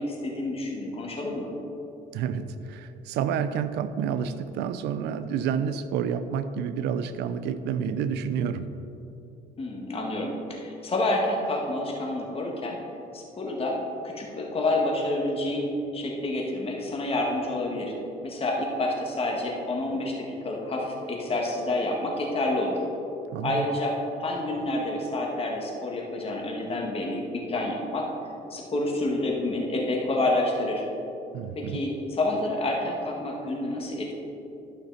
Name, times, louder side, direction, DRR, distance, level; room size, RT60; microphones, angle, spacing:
voice 1, 0.0-1.5 9.6-12.8 13.1-13.8 14.0-17.9 18.2-22.8 23.4-23.9 24.2-27.2 27.5-28.1 28.5-30.9 31.6-34.1, left 2 dB, 35° left, -1 dB, 1.7 m, -28 dB
voice 2, 2.1-8.7 23.3-23.7 31.3-31.8, right 7 dB, 80° right, 12 dB, 0.5 m, -29 dB
12.0 x 5.8 x 4.0 m, 2.9 s
cardioid pair, 110°, 17 cm